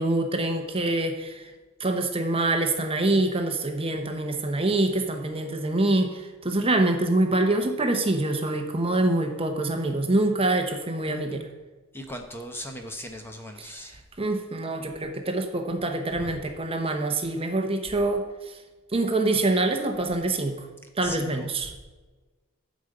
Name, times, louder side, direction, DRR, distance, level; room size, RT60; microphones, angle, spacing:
voice 1, 0.0-1.5 1.8-11.5 13.6-13.7 14.2-18.6 18.9-20.6 21.0-21.7, right 2 dB, 25° right, 5 dB, 0.9 m, -25 dB
voice 2, 11.9-14.0 16.2-16.3 21.0-21.5, equal, 10° left, 4 dB, 0.9 m, -38 dB
12.0 x 5.2 x 7.7 m, 1.2 s
head